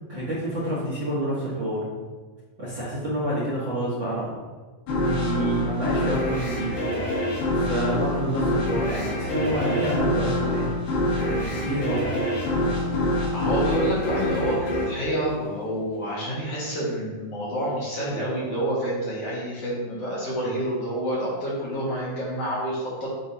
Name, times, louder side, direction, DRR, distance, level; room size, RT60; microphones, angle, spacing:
voice 1, 0.1-1.8 2.6-4.3 4.9-6.8 7.5-10.8 11.1-12.2, right 1 dB, 55° right, -7 dB, 1.3 m, -28 dB
sound 1, 4.9-16.1, left 1 dB, 80° left, 3.0 m, -26 dB
voice 2, 13.3-23.1, equal, 55° left, -7 dB, 2.2 m, -28 dB
9.3 x 3.8 x 2.8 m, 1.4 s
omnidirectional pair, 3.9 m